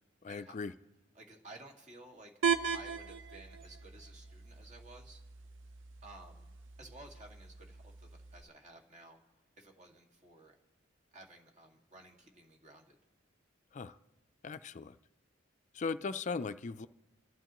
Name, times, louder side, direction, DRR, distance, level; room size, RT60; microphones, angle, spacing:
voice 1, 0.2-0.7 13.7-14.0 14.4-15.0 15.7-16.9, left 4 dB, 40° left, 12 dB, 0.4 m, -38 dB
voice 2, 1.1-2.3 2.7-5.2 6.0-6.5 6.8-9.2 9.6-10.5 11.1-13.0, right 2 dB, 40° right, 1 dB, 2.0 m, -54 dB
sound 1, 2.4-8.4, right 7 dB, 70° right, 0.7 m, -39 dB
28.5 x 11.5 x 3.0 m, 1.1 s
head